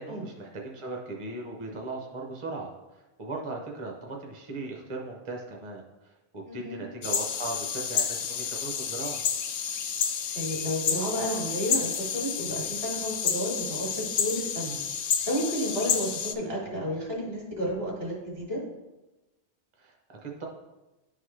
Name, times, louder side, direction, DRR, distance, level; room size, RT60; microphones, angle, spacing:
voice 1, 0.0-9.2 19.8-19.9 20.2-20.4, right 2 dB, 30° right, -1 dB, 0.7 m, -38 dB
voice 2, 6.5-6.8 10.3-14.8 15.2-18.6, equal, 60° right, -4 dB, 2.2 m, -32 dB
sound 1, 7.0-16.3, left 7 dB, 75° left, 0.9 m, -30 dB
10.5 x 3.9 x 3.2 m, 1.1 s
omnidirectional pair, 1.1 m